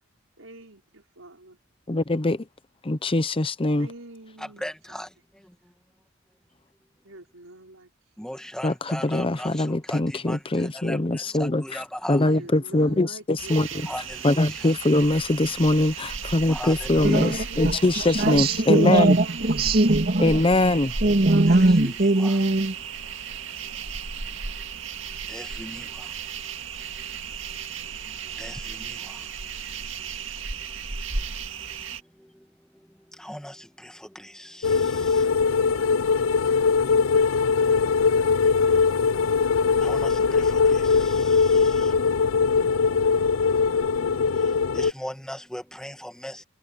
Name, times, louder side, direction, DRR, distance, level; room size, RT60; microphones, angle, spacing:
voice 1, 0.4-1.6 3.8-4.7 7.0-7.9 12.3-14.0 16.9-18.2 18.4-19.5, right 2 dB, 85° right, 5.0 m, -45 dB
voice 2, 1.9-2.5 2.8-3.9 8.6-11.8 12.1-13.9 14.2-19.2 20.2-21.0, left 2 dB, 25° left, 0.7 m, -23 dB
voice 3, 4.6-5.1 8.2-10.0 10.3-10.4 10.9-11.0 11.4-12.2 13.9-14.0 16.5-17.2 21.8-21.9 22.2-22.3 25.3-25.8 28.4-28.5 33.2-33.5 39.8-40.1 44.8-46.4, equal, 5° left, 1.8 m, -36 dB
sound 1, 13.4-32.0, right 5 dB, 65° right, 2.3 m, -35 dB
voice 4, 17.0-17.8 18.2-20.3 21.0-22.8, right 2 dB, 50° right, 2.0 m, -20 dB
sound 2, 34.6-44.9, left 5 dB, 80° left, 0.5 m, -21 dB
head